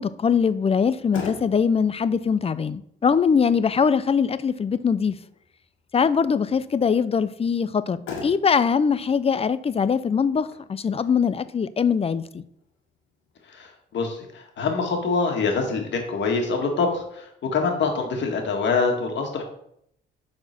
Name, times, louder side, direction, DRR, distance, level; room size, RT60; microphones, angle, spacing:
voice 1, 0.0-5.2 5.9-12.4, left 6 dB, 30° left, 0.5 m, -22 dB
Motor vehicle (road), 1.1-13.7, left 5 dB, 85° left, 2.2 m, -44 dB
voice 2, 13.5-19.4, left 4 dB, 65° left, 2.0 m, -25 dB
7.8 x 4.4 x 6.0 m
cardioid pair, 90°, 20 cm